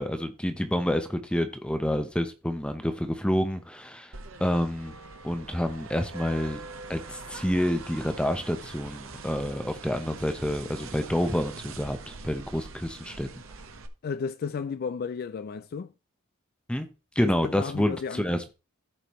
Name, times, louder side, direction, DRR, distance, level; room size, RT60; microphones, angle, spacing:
voice 1, 0.0-4.1 4.4-4.9 5.2-6.6 6.9-13.3 16.7-16.9 17.2-18.5, equal, 5° left, 0.7 m, -28 dB
sound 1, 4.1-13.9, right 3 dB, 65° right, 1.1 m, -43 dB
voice 2, 14.0-15.9 17.2-18.5, left 5 dB, 45° left, 0.3 m, -33 dB
15.0 x 5.1 x 3.0 m
head